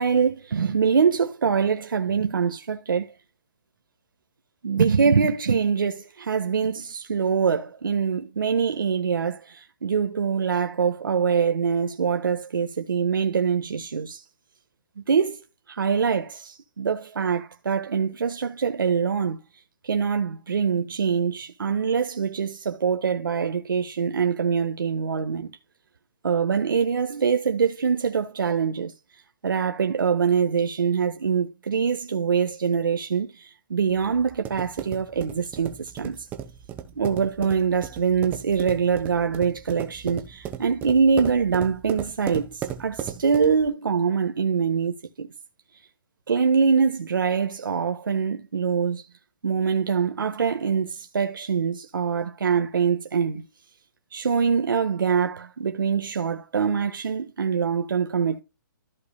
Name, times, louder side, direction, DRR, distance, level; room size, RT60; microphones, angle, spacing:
voice 1, 0.0-3.1 4.6-14.2 15.0-15.4 15.7-19.4 19.8-25.5 26.2-28.9 29.4-36.2 36.9-45.3 46.3-49.0 49.4-53.5 54.1-58.4, right 6 dB, 85° right, 1.4 m, -24 dB
sound 1, 33.9-43.7, right 10 dB, 15° right, 0.8 m, -36 dB
14.5 x 5.3 x 2.2 m
hypercardioid pair, 160°, 11 cm